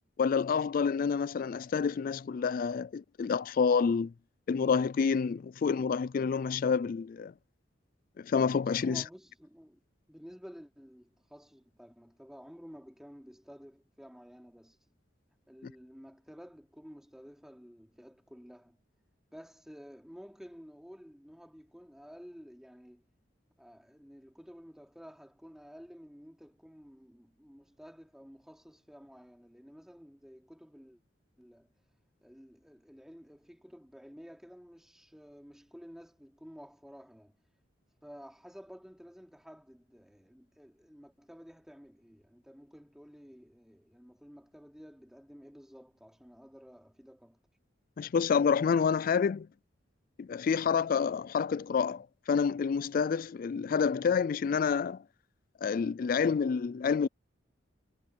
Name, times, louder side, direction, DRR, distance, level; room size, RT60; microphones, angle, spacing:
voice 1, 0.2-4.1 4.5-7.3 8.2-9.0 48.0-49.5 50.2-55.0 55.6-57.1, left 6 dB, 45° left, 0.3 m, -28 dB
voice 2, 8.8-9.8 10.1-14.8 15.5-18.8 19.3-23.0 23.6-31.0 31.4-31.7 32.2-37.4 38.0-47.4, equal, 5° right, 3.5 m, -52 dB
head